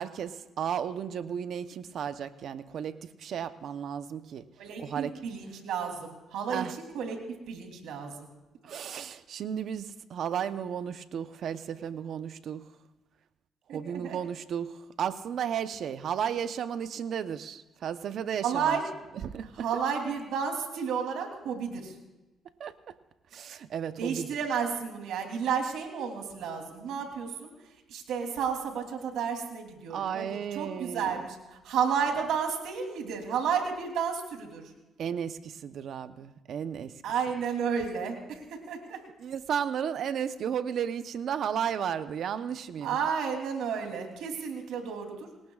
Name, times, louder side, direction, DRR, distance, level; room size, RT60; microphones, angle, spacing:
voice 1, 0.0-4.5 4.8-5.2 6.5-6.7 8.6-12.6 13.7-18.8 19.2-19.7 22.6-22.8 23.3-24.3 29.9-31.2 35.0-36.9 39.2-43.0, right 8 dB, 65° right, 11 dB, 0.8 m, -34 dB
voice 2, 4.6-7.2 7.5-8.3 13.7-14.2 18.4-18.8 19.4-21.9 24.0-27.5 27.9-30.3 30.5-34.7 37.0-38.4 38.7-39.0 42.8-45.3, right 7 dB, 85° right, 3 dB, 3.1 m, -32 dB
28.5 x 18.0 x 2.4 m, 1.1 s
cardioid pair, 90°, 0 cm